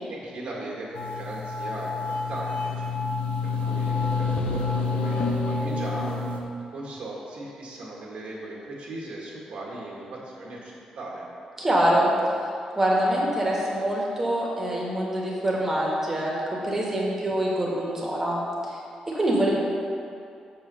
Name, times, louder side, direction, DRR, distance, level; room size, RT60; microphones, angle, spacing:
voice 1, 0.1-2.9 3.4-4.6 4.9-6.2 6.7-11.2, right 2 dB, 65° right, -4 dB, 1.7 m, -38 dB
sound 1, 0.9-6.4, left 3 dB, 85° left, 1.0 m, -28 dB
voice 2, 11.6-12.1 12.8-16.3 16.6-18.4 19.1-19.5, right 1 dB, 15° right, -4 dB, 1.8 m, -24 dB
6.6 x 5.7 x 6.8 m, 2.5 s
wide cardioid pair, 150°, 2 cm